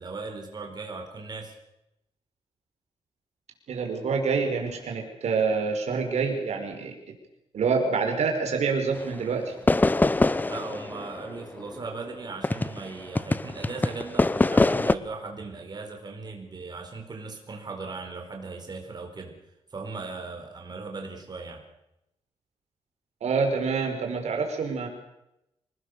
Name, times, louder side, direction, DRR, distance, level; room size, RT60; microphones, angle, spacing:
voice 1, 0.0-1.5 10.4-19.3 19.7-21.6, right 4 dB, 40° right, 2 dB, 4.9 m, -38 dB
voice 2, 3.7-6.9 7.5-9.5 23.2-24.9, right 5 dB, 85° right, 3 dB, 5.1 m, -26 dB
sound 1, 9.0-9.1 9.7-12.9 13.2-14.9, left 2 dB, 15° left, 0.8 m, -23 dB
26.5 x 19.5 x 6.9 m, 0.86 s
wide cardioid pair, 135°, 11 cm